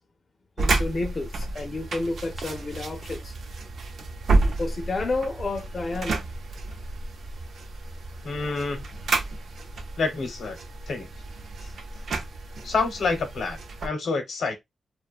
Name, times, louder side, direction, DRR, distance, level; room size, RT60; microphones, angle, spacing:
voice 1, 0.6-3.3 4.4-6.2 11.6-11.7, left 3 dB, 35° left, 0.5 m, -31 dB
sound 1, 0.6-13.9, right 3 dB, 70° right, 0.5 m, -30 dB
voice 2, 8.2-8.8 10.0-10.6 10.9-11.1 12.6-14.6, left 4 dB, 75° left, 0.8 m, -28 dB
2.5 x 2.2 x 2.3 m
wide cardioid pair, 125°, 0 cm